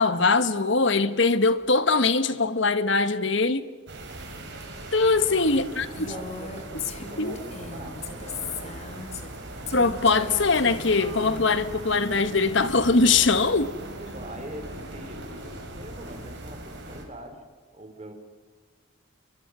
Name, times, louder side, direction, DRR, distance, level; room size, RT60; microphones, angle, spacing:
voice 1, 0.0-3.6 4.9-6.0 7.2-7.3 9.7-13.7, left 3 dB, 60° left, 1.3 m, -22 dB
sound 1, 3.9-17.1, right 1 dB, 55° right, 4.3 m, -39 dB
voice 2, 5.2-8.7 13.9-17.4 17.7-18.1, right 1 dB, 30° right, 3.6 m, -43 dB
Female speech woman speaking, 5.9-9.4 9.7-11.4, left 5 dB, 30° left, 2.1 m, -38 dB
30.0 x 23.5 x 6.2 m
head